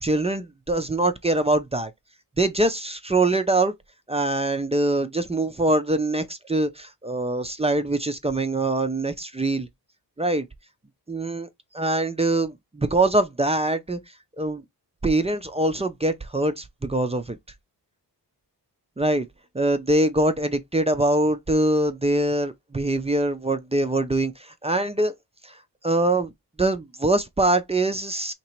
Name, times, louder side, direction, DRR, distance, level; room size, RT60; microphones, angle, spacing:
voice 1, 0.0-1.9 2.4-3.7 4.1-9.7 10.2-10.5 11.1-11.5 11.7-14.0 14.4-14.6 15.0-17.4 19.0-19.3 19.5-25.1 25.4-25.5 25.8-26.3 26.6-28.3, right 2 dB, 15° right, 0.5 m, -23 dB
2.9 x 2.9 x 4.4 m
cardioid pair, 85°, 41 cm